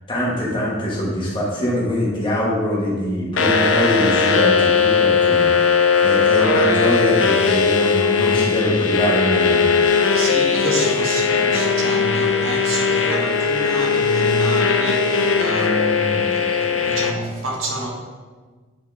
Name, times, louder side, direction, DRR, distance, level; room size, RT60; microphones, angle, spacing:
voice 1, 0.1-10.2, equal, 25° left, -5 dB, 1.6 m, -23 dB
sound 1, 3.4-17.1, left 5 dB, 70° left, 0.6 m, -18 dB
voice 2, 10.1-17.9, right 2 dB, 85° right, -1 dB, 1.5 m, -28 dB
9.3 x 4.4 x 3.5 m, 1.4 s
head